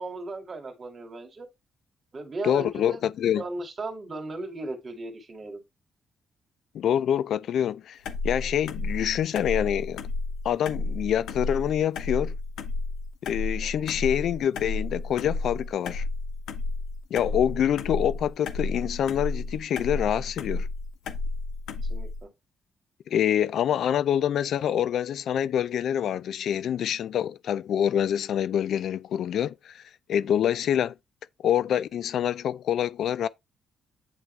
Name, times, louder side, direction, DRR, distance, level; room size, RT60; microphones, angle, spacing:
voice 1, 0.0-1.5 2.1-3.0 3.3-5.6 13.6-13.7 21.9-22.3, right 2 dB, 35° right, 2.3 m, -36 dB
voice 2, 2.4-3.4 6.7-8.0 8.2-10.0 10.4-12.4 13.3-16.0 17.1-20.7 23.1-29.8 30.1-30.9 31.4-33.3, left 10 dB, 65° left, 0.4 m, -26 dB
sound 1, 8.0-22.2, left 3 dB, 90° left, 0.9 m, -32 dB
9.1 x 3.5 x 3.2 m
cardioid pair, 135°, 0 cm